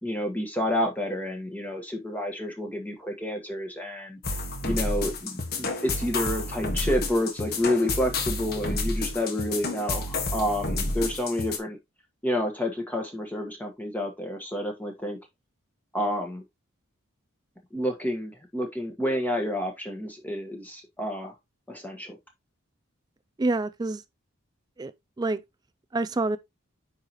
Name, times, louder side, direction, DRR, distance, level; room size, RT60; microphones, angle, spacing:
voice 1, 0.0-4.2 4.6-11.8 12.2-15.2 15.9-16.4 17.7-21.3 21.7-22.2, left 1 dB, 10° left, 1.4 m, -29 dB
sound 1, 4.2-11.6, left 2 dB, 45° left, 1.5 m, -30 dB
voice 2, 23.4-24.0 24.8-25.4 25.9-26.4, right 2 dB, 20° right, 0.3 m, -27 dB
9.5 x 4.7 x 3.0 m
head